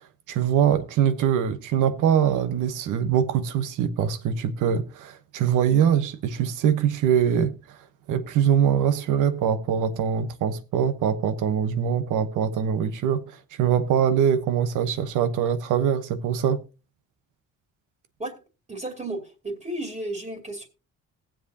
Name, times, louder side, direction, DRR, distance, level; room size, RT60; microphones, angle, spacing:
voice 1, 0.3-7.8 8.1-16.6, right 8 dB, 90° right, 1.1 m, -23 dB
voice 2, 18.7-20.7, right 1 dB, 25° right, 2.5 m, -33 dB
19.5 x 7.6 x 2.8 m
cardioid pair, 90°, 30 cm